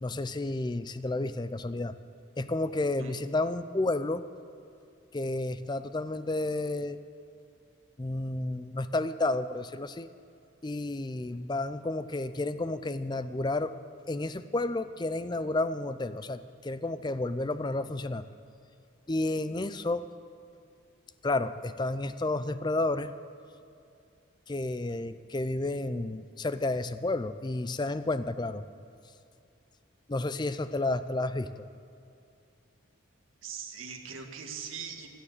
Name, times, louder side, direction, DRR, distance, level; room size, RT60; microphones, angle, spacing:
voice 1, 0.0-2.0 2.4-4.2 5.1-7.0 8.0-10.1 10.6-13.7 14.1-18.2 19.1-20.0 21.2-23.1 24.5-28.6 30.1-31.7, left 2 dB, 20° left, 12 dB, 0.4 m, -31 dB
voice 2, 33.4-35.1, right 6 dB, 75° right, 3 dB, 1.7 m, -40 dB
16.5 x 11.5 x 6.6 m, 2.5 s
head